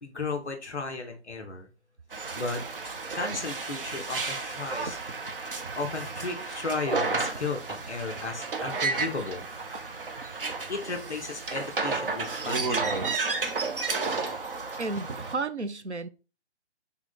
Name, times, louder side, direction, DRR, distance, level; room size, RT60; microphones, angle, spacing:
voice 1, 0.0-1.7 2.3-2.6 3.1-5.0 5.7-9.5 10.7-13.0, left 3 dB, 5° left, 0.6 m, -34 dB
sound 1, 2.1-15.4, right 4 dB, 55° right, 1.0 m, -32 dB
voice 2, 14.8-16.1, right 3 dB, 85° right, 0.8 m, -32 dB
6.3 x 3.9 x 3.8 m
figure-of-eight pair, 140°, 34 cm